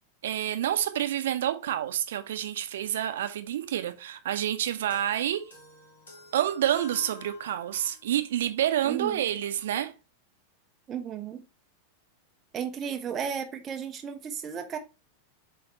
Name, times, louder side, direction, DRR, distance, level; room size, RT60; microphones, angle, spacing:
voice 1, 0.2-5.5 6.3-9.9, right 11 dB, 60° right, 0.9 m, -28 dB
sound 1, 4.9-8.1, left 4 dB, 65° left, 2.4 m, -50 dB
voice 2, 8.8-9.3 10.9-11.4 12.5-14.8, right 7 dB, 25° right, 0.7 m, -34 dB
8.0 x 3.4 x 4.2 m
figure-of-eight pair, 90°, 0 cm